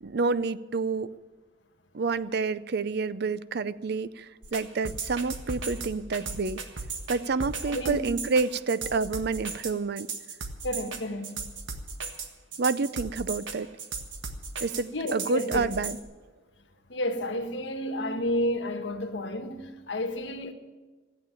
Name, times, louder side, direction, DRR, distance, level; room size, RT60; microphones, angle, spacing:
voice 1, 0.0-1.1 1.9-6.6 7.1-10.1 12.6-13.7 14.6-16.0, right 4 dB, 60° right, 0.5 m, -28 dB
sound 1, 4.4-16.0, right 4 dB, 80° right, 1.6 m, -36 dB
voice 2, 7.7-8.1 10.6-11.4 14.9-15.8 16.9-20.5, left 1 dB, 70° left, 1.4 m, -31 dB
15.5 x 8.7 x 8.8 m
head